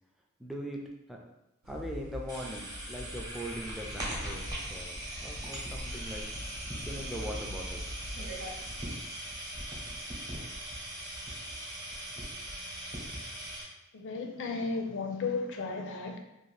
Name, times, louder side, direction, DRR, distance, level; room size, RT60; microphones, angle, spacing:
voice 1, 0.4-0.8 1.1-1.2 1.6-6.3 6.9-7.9, equal, ahead, 0.3 m, -41 dB
sound 1, 1.6-8.9, equal, 65° right, 0.5 m, -44 dB
sound 2, 2.3-13.6, right 1 dB, 20° right, 0.8 m, -40 dB
voice 2, 13.9-16.2, left 4 dB, 60° left, 0.4 m, -34 dB
2.6 x 2.4 x 3.1 m
head